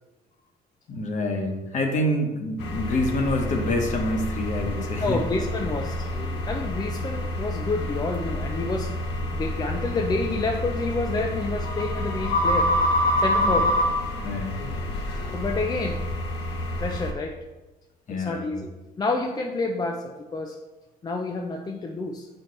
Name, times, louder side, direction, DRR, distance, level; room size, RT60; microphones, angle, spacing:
voice 1, 0.9-5.2 13.4-13.6 14.2-14.6 18.1-18.6, left 1 dB, 45° left, 3 dB, 1.1 m, -27 dB
sound 1, 2.6-17.1, left 1 dB, 85° left, 0.8 m, -27 dB
voice 2, 5.0-8.9 9.3-12.7 13.2-13.8 15.1-16.0 16.8-17.4 18.1-20.6 21.0-22.3, left 3 dB, 25° left, 2 dB, 0.5 m, -29 dB
7.9 x 4.4 x 3.2 m, 1.1 s
cardioid pair, 110°, 17 cm